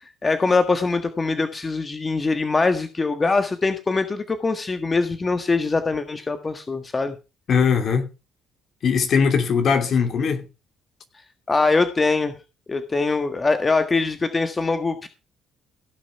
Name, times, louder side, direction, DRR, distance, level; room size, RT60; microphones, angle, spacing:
voice 1, 0.2-7.1 11.5-12.3 12.7-15.1, left 3 dB, 30° left, 1.6 m, -22 dB
voice 2, 7.5-8.1 8.8-10.4, left 6 dB, 55° left, 2.8 m, -20 dB
16.5 x 6.3 x 5.9 m
supercardioid pair, 60°, 0 cm